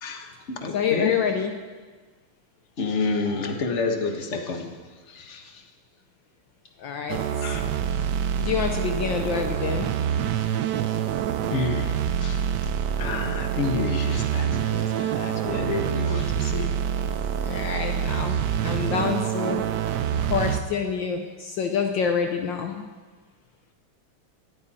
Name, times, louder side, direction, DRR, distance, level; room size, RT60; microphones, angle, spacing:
voice 1, 0.0-1.1 2.8-4.7 5.1-5.6 7.4-7.6 11.5-11.9 12.2-12.4 13.0-16.7, left 3 dB, 35° left, 3 dB, 1.7 m, -29 dB
voice 2, 0.7-1.5 6.8-7.2 8.4-9.9 17.4-19.7 20.3-22.9, left 6 dB, 65° left, 4 dB, 1.5 m, -27 dB
sound 1, 7.1-20.6, right 9 dB, 65° right, 1.1 m, -26 dB
19.0 x 14.5 x 4.3 m, 1.4 s
omnidirectional pair, 2.3 m